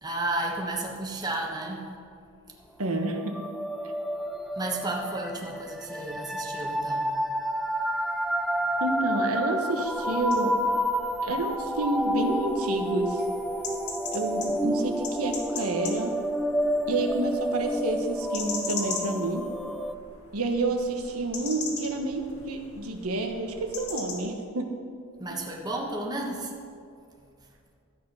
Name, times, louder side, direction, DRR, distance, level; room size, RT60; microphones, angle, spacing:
voice 1, 0.0-1.9 4.6-7.1 25.2-26.5, right 2 dB, 20° right, -1 dB, 1.3 m, -32 dB
voice 2, 2.8-3.4 8.8-10.6 11.2-13.2 14.1-16.2 16.9-19.5 20.3-24.8, right 2 dB, 85° right, 4 dB, 1.3 m, -29 dB
sound 1, 3.1-19.9, equal, ahead, 0.4 m, -30 dB
sound 2, 9.8-24.3, left 4 dB, 80° left, 2.0 m, -41 dB
13.5 x 8.1 x 5.6 m, 2.4 s
head